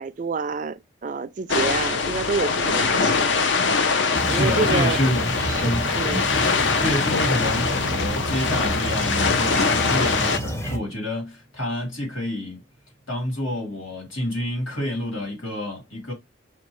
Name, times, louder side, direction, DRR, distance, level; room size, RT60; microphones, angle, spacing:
voice 1, 0.0-3.3 4.3-5.1 5.4-6.2, right 4 dB, 40° right, 0.3 m, -28 dB
sound 1, 1.5-10.4, left 4 dB, 65° left, 0.6 m, -23 dB
voice 2, 4.0-5.2 5.6-5.9 6.8-12.6 13.1-16.1, left 1 dB, 85° left, 2.7 m, -28 dB
sound 2, 4.1-10.8, right 1 dB, 15° left, 0.6 m, -30 dB
5.3 x 2.7 x 3.0 m
head